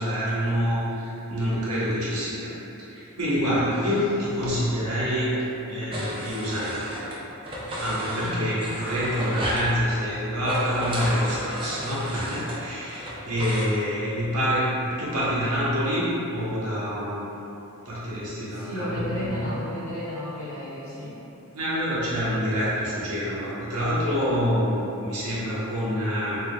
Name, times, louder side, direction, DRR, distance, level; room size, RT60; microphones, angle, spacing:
voice 1, 0.0-2.5 2.8-5.3 5.7-7.1 7.7-17.3 17.8-19.4 21.5-26.4, equal, 90° right, -8 dB, 1.0 m, -27 dB
sound 1, 5.9-7.2 7.4-9.7 10.4-13.6, equal, 25° right, 0.5 m, -32 dB
voice 2, 8.2-8.5 18.3-21.2, left 1 dB, 50° left, -11 dB, 0.6 m, -33 dB
3.4 x 3.4 x 2.2 m, 3.0 s
head